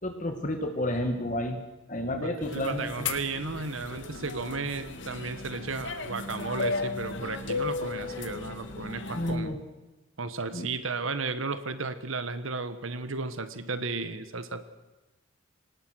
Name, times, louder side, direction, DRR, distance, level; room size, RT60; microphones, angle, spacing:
voice 1, 0.0-1.6 1.9-3.1 9.1-9.6 10.5-10.7, left 1 dB, 40° left, 5 dB, 2.1 m, -31 dB
voice 2, 2.2-9.6 10.2-14.6, right 3 dB, 80° right, 11 dB, 1.4 m, -34 dB
sound 1, 2.4-9.4, left 4 dB, 60° left, 2.2 m, -35 dB
26.0 x 19.5 x 6.4 m, 1.1 s
head